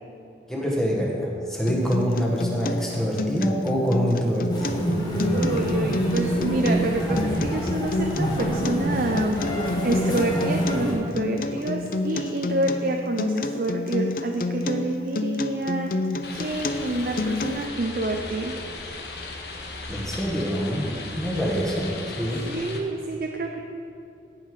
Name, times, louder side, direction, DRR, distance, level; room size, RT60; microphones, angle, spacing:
voice 1, 0.5-4.8 19.9-22.4, equal, 5° left, -3 dB, 1.5 m, -25 dB
Acoustic guitar, 1.7-17.7, left 2 dB, 50° left, 0.5 m, -29 dB
sound 1, 4.5-10.9, equal, 25° left, 1.4 m, -26 dB
voice 2, 5.3-9.4 9.8-15.9 16.3-18.5 22.5-23.6, right 2 dB, 50° right, 2 dB, 0.6 m, -28 dB
sound 2, 16.2-22.8, left 3 dB, 70° left, 1.1 m, -37 dB
15.5 x 5.8 x 4.9 m, 2.7 s
head